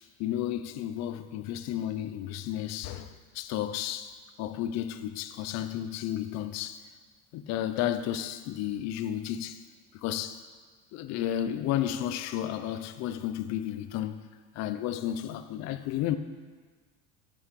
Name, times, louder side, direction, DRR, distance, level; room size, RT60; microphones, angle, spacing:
voice 1, 0.2-6.8 7.3-9.6 10.0-10.4 10.9-14.3 14.5-16.2, left 11 dB, 45° left, 0.6 m, -32 dB
10.0 x 7.9 x 4.8 m
cardioid pair, 150°, 38 cm